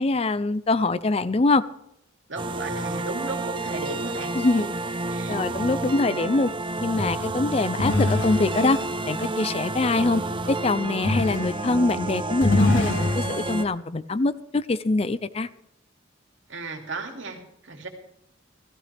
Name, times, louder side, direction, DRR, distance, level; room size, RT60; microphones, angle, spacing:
voice 1, 0.0-1.6 4.3-4.7 5.3-6.5 6.8-8.8 9.1-10.2 10.5-15.5, left 3 dB, 30° left, 15 dB, 0.5 m, -24 dB
voice 2, 2.3-4.3 5.1-5.4 16.5-17.9, right 3 dB, 75° right, 3 dB, 2.7 m, -35 dB
sound 1, 2.4-13.6, right 2 dB, 25° right, 0.7 m, -30 dB
sound 2, 6.9-10.2 11.0-11.7 12.1-13.6, left 2 dB, 85° left, 3.8 m, -26 dB
15.0 x 15.0 x 3.4 m, 0.79 s
head